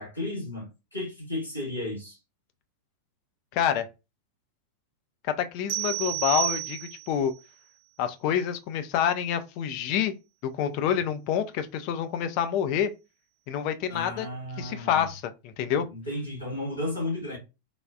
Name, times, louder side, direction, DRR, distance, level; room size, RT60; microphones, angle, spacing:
voice 1, 0.0-2.2 13.9-15.1 15.7-17.4, left 1 dB, 85° left, 1.6 m, -34 dB
voice 2, 3.5-3.9 5.3-7.3 8.0-10.1 10.4-12.9 13.5-14.3 14.6-15.9, left 9 dB, 45° left, 0.4 m, -27 dB
sound 1, 5.7-7.3, right 16 dB, 50° right, 0.7 m, -31 dB
3.4 x 2.3 x 2.4 m
figure-of-eight pair, 90°, 0 cm